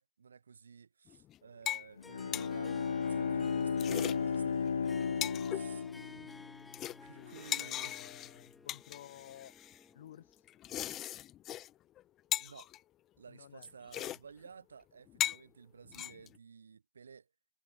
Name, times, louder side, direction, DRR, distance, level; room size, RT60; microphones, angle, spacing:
voice 1, 0.0-6.4 7.0-8.0 12.4-12.7 13.2-17.3, right 6 dB, 75° right, 3.9 m, -54 dB
sound 1, 1.1-1.4 1.7-1.9 2.2-2.5 3.6-4.2 4.7-4.8 5.0-5.6 6.1-6.4 6.7-9.8 10.5-11.7 12.0-12.1 12.3-12.8 13.6-13.7 13.9-14.2 14.5-14.6 15.1-15.4 15.9-16.4, left 13 dB, 25° left, 0.7 m, -38 dB
Bowed string instrument, 2.0-6.7, left 6 dB, 75° left, 0.3 m, -34 dB
Harp, 2.0-10.5, left 4 dB, 10° left, 6.0 m, -53 dB
voice 2, 7.1-9.5 9.9-10.4 13.3-13.7, left 11 dB, 55° left, 3.4 m, -54 dB
hypercardioid pair, 130°, 0 cm